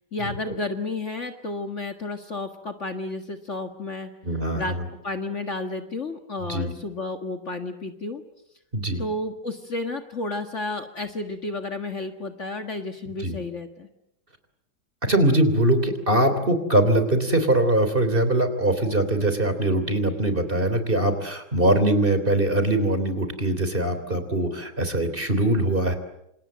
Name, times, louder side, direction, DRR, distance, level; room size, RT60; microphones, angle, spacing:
voice 1, 0.1-4.1 4.5-4.7 5.0-8.2 9.0-13.9, left 2 dB, 45° left, 6 dB, 2.0 m, -31 dB
voice 2, 4.2-4.9 6.5-6.7 8.7-9.0 13.2-13.4 15.1-26.0, right 1 dB, 30° right, 9 dB, 3.6 m, -22 dB
27.5 x 27.5 x 7.7 m, 0.83 s
omnidirectional pair, 1.9 m